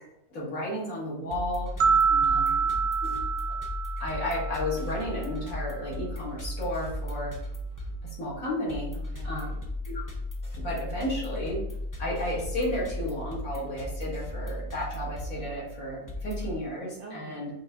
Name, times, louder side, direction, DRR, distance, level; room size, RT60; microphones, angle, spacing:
voice 1, 0.3-1.7 2.3-2.4 3.0-3.1 4.0-7.3 8.2-8.9 9.2-9.5 9.9-10.0 10.6-11.6 12.0-17.5, left 1 dB, 65° left, -5 dB, 2.0 m, -33 dB
sound 1, 1.3-16.5, left 2 dB, 30° left, 0.3 m, -36 dB
sound 2, 1.8-4.9, right 5 dB, 80° right, 1.2 m, -26 dB
voice 2, 1.9-2.8 8.9-9.6 17.0-17.5, right 6 dB, 65° right, 0 dB, 0.7 m, -45 dB
5.2 x 2.8 x 3.7 m, 0.79 s
omnidirectional pair, 1.6 m